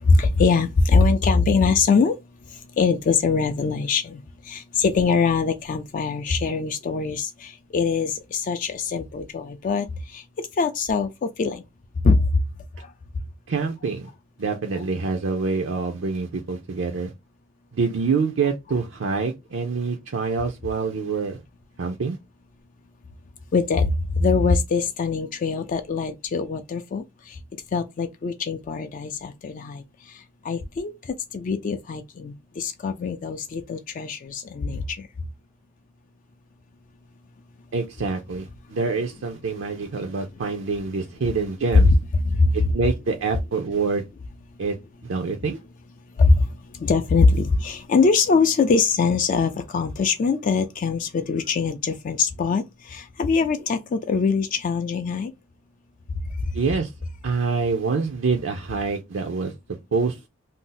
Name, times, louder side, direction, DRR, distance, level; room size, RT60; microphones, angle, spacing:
voice 1, 0.0-2.2 2.8-9.9 10.1-11.6 12.0-12.2 23.5-27.4 27.7-29.8 30.4-30.9 31.3-35.0 42.2-42.7 46.2-46.5 46.7-55.3, left 4 dB, 40° left, 0.3 m, -22 dB
voice 2, 13.5-14.1 14.4-17.1 17.7-21.4 21.8-22.2 37.7-41.9 42.5-44.0 44.6-44.8 45.1-45.6 56.5-56.9 57.2-59.5 59.9-60.2, right 4 dB, 70° right, 0.5 m, -26 dB
2.6 x 2.0 x 3.8 m
head